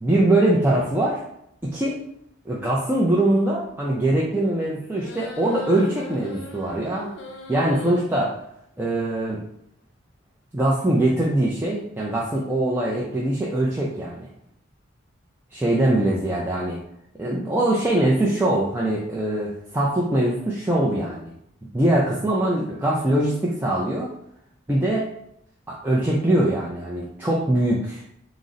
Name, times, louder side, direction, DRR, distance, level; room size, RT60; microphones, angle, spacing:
voice 1, 0.0-1.2 1.7-1.9 2.5-7.1 7.5-8.3 8.8-9.4 10.5-14.3 15.5-16.8 17.2-21.3 21.7-24.1 24.7-25.1 25.7-28.0, right 1 dB, 10° right, -5 dB, 0.4 m, -22 dB
sound 1, 5.0-8.0, left 2 dB, 60° left, 0.5 m, -39 dB
3.8 x 2.0 x 3.8 m, 0.74 s
head